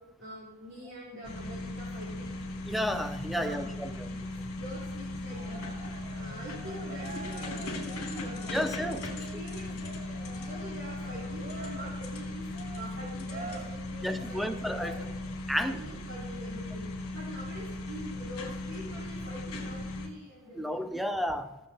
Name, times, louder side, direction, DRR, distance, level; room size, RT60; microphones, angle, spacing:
voice 1, 0.2-2.4 3.3-5.6 6.1-9.9 10.3-12.5 12.7-15.1 15.5-16.9 17.1-21.0, equal, 55° right, 2.8 m, -45 dB
sound 1, 1.2-20.1, left 2 dB, 75° left, 2.7 m, -38 dB
voice 2, 2.6-4.1 8.5-9.1 14.0-14.9 15.5-15.8 20.6-21.6, equal, ahead, 0.5 m, -32 dB
Cheering, 5.3-15.3, right 3 dB, 35° right, 0.9 m, -47 dB
16.0 x 7.3 x 3.5 m
head